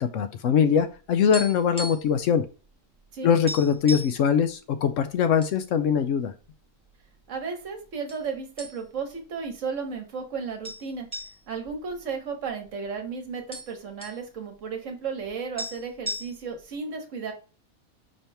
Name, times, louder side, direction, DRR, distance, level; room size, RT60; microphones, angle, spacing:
voice 1, 0.0-2.4 3.2-6.3, left 7 dB, 70° left, 9 dB, 0.9 m, -22 dB
sound 1, 1.0-2.2 2.5-2.7 3.0-3.1 3.5-4.2 4.9-5.6 5.9-6.1 6.8-7.4 8.1-8.3 8.6-9.1 9.5-9.6 10.6-12.7 13.0-13.1 13.3-14.2 15.3-15.4 15.6-16.6, equal, 5° left, 1.1 m, -36 dB
voice 2, 7.3-11.1 11.5-17.3, right 5 dB, 65° right, 5 dB, 1.3 m, -34 dB
5.4 x 2.9 x 3.3 m, 0.34 s
omnidirectional pair, 1.5 m